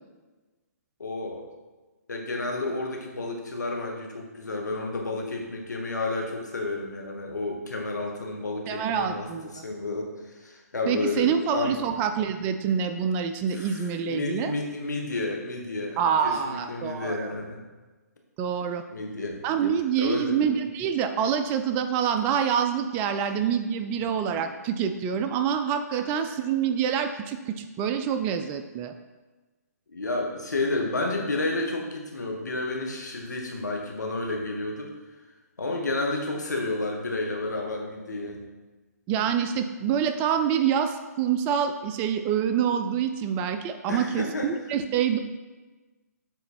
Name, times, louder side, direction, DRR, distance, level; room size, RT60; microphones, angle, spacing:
voice 1, 1.0-1.5 2.1-9.3 9.5-11.7 13.5-17.6 18.9-19.4 20.0-20.4 24.0-24.1 29.9-34.9 35.6-38.4 43.9-44.6, left 2 dB, 80° left, 1 dB, 1.5 m, -31 dB
voice 2, 8.7-9.6 10.9-14.5 16.0-17.3 18.4-18.8 19.4-28.9 39.1-45.2, right 8 dB, 20° right, 8 dB, 0.4 m, -26 dB
7.9 x 4.0 x 4.4 m, 1.2 s
figure-of-eight pair, 140°, 9 cm